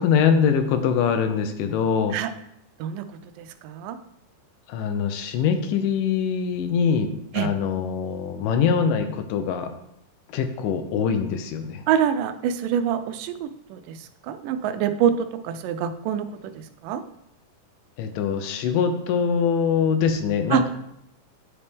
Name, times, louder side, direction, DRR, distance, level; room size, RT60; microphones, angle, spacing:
voice 1, 0.0-2.2 4.7-9.7 10.3-11.8 18.0-20.7, left 6 dB, 80° left, 7 dB, 2.3 m, -23 dB
voice 2, 3.4-4.0 7.3-7.5 11.9-13.8 14.3-16.5 16.8-17.0 20.5-20.6, right 9 dB, 85° right, 10 dB, 2.2 m, -25 dB
9.7 x 4.3 x 3.5 m, 0.77 s
omnidirectional pair, 3.8 m